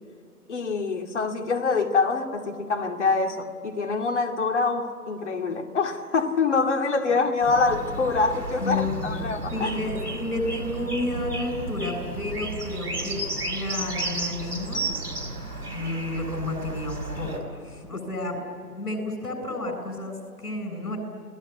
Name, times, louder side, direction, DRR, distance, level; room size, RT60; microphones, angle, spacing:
voice 1, 0.5-9.7 17.9-18.0, left 4 dB, 50° left, 2.5 m, -25 dB
sound 1, 7.4-17.4, right 2 dB, 85° right, 5.1 m, -33 dB
voice 2, 8.6-9.2 9.5-14.9 15.7-18.4 18.7-21.0, left 2 dB, 70° left, 7.8 m, -31 dB
29.5 x 19.5 x 9.6 m
figure-of-eight pair, 140°, 46 cm